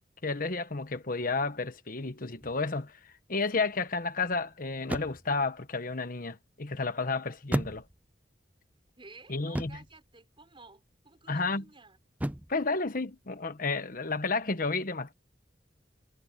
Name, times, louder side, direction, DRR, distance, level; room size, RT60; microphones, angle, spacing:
voice 1, 0.2-7.8 9.3-9.8 11.3-11.6 12.5-15.1, left 3 dB, 50° left, 1.3 m, -31 dB
sound 1, 2.4-2.8 4.8-5.4 7.5-8.2 9.5-10.0 12.2-12.6, right 1 dB, 10° right, 0.5 m, -34 dB
voice 2, 9.0-12.0, right 3 dB, 30° right, 5.1 m, -53 dB
head